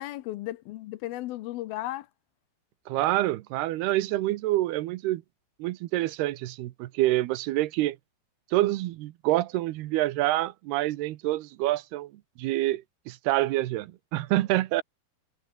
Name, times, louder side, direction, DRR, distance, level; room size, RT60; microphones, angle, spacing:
voice 1, 0.0-2.1, left 16 dB, 80° left, 2.6 m, -35 dB
voice 2, 2.9-5.2 5.6-8.0 8.5-12.1 12.4-14.8, right 16 dB, 90° right, 3.0 m, -27 dB
omnidirectional pair, 4.5 m